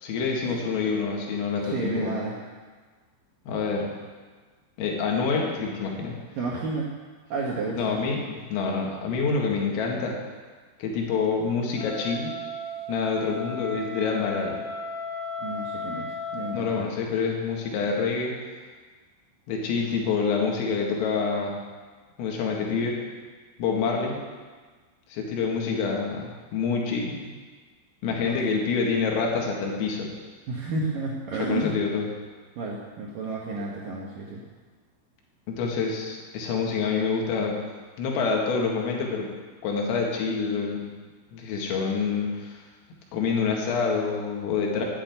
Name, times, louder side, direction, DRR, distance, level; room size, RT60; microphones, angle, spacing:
voice 1, 0.0-2.2 3.5-3.9 4.8-6.2 7.7-10.2 10.8-12.3 12.9-14.5 16.5-18.3 19.5-21.6 22.2-23.0 23.6-24.2 25.1-27.2 28.0-30.1 31.4-32.1 35.5-37.6 38.0-39.3 39.6-40.9 41.3-42.6 43.1-44.9, left 5 dB, 85° left, -1 dB, 4.6 m, -27 dB
voice 2, 1.6-2.4 6.4-6.9 7.3-7.9 15.4-16.9 28.3-28.4 30.5-31.7 32.6-34.4, right 3 dB, 65° right, -3 dB, 2.2 m, -31 dB
Wind instrument woodwind instrument, 11.7-16.8, left 2 dB, 50° left, 4.7 m, -35 dB
11.5 x 8.8 x 9.1 m, 1.4 s
omnidirectional pair, 5.8 m